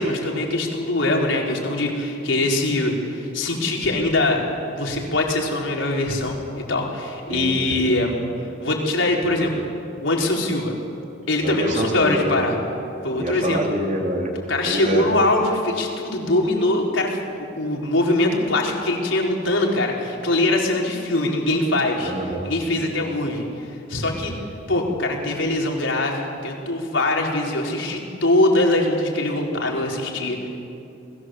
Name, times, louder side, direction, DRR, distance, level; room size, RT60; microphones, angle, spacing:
voice 1, 0.0-4.4 4.8-8.2 8.6-9.7 10.0-10.7 11.3-12.6 13.0-13.6 14.5-22.1 22.4-24.3 24.7-30.5, left 2 dB, 80° left, -1 dB, 4.5 m, -22 dB
voice 2, 7.3-7.9 11.4-12.3 13.2-14.3 14.6-15.0 22.0-22.5, equal, 40° right, 0 dB, 3.9 m, -26 dB
30.0 x 21.0 x 7.9 m, 2.7 s
head